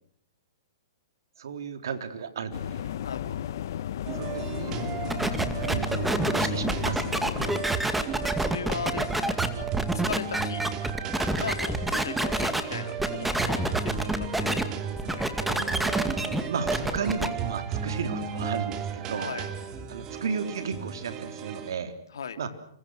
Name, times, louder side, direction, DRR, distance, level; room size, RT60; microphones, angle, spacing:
voice 1, 1.4-2.9 4.1-7.1 15.4-19.3 19.9-21.9 22.4-22.5, right 6 dB, 75° right, 8 dB, 3.7 m, -34 dB
sound 1, 2.5-7.6, left 10 dB, 60° left, 1.2 m, -34 dB
voice 2, 3.0-3.4 8.3-9.7 9.9-10.6 11.4-14.5 15.0-15.3 19.2-19.5 22.1-22.4, left 7 dB, 80° left, 6 dB, 2.7 m, -37 dB
sound 2, 4.1-21.7, right 7 dB, 30° right, 2.8 m, -34 dB
sound 3, 5.1-12.6 13.0-14.6 15.0-17.3, right 1 dB, 5° right, 2.2 m, -27 dB
28.5 x 26.0 x 6.5 m, 0.62 s
hypercardioid pair, 140°, 2 cm